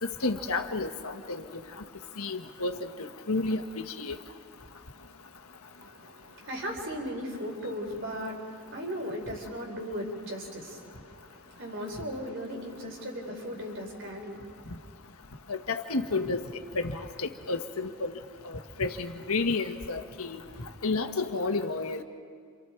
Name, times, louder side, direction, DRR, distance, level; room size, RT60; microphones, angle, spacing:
voice 1, 0.0-1.5 2.2-4.2 15.5-16.4 16.7-18.1 18.4-20.4 20.8-22.0, left 3 dB, 80° left, 6 dB, 1.5 m, -31 dB
voice 2, 5.7-14.8, equal, 55° right, 0 dB, 4.6 m, -37 dB
29.5 x 27.5 x 4.7 m, 2.1 s
head